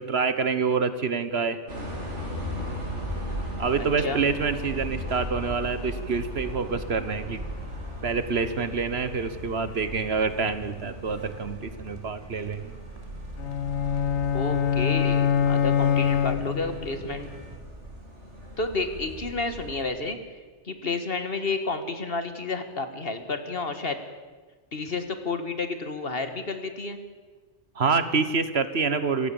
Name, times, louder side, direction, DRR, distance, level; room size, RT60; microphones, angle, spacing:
voice 1, 0.0-1.6 3.6-7.4 8.0-12.7 27.7-29.3, right 5 dB, 60° right, 12 dB, 1.5 m, -27 dB
sound 1, 1.7-19.8, equal, 75° right, 4.6 m, -37 dB
voice 2, 3.8-4.2 14.3-17.3 18.6-20.2 20.6-24.0 24.7-27.0, left 3 dB, 55° left, 8 dB, 2.0 m, -31 dB
sound 2, 4.1-17.6, right 2 dB, 30° right, 2.0 m, -47 dB
sound 3, 13.4-16.9, left 8 dB, 70° left, 1.1 m, -24 dB
27.0 x 15.5 x 7.2 m, 1.4 s
omnidirectional pair, 1.2 m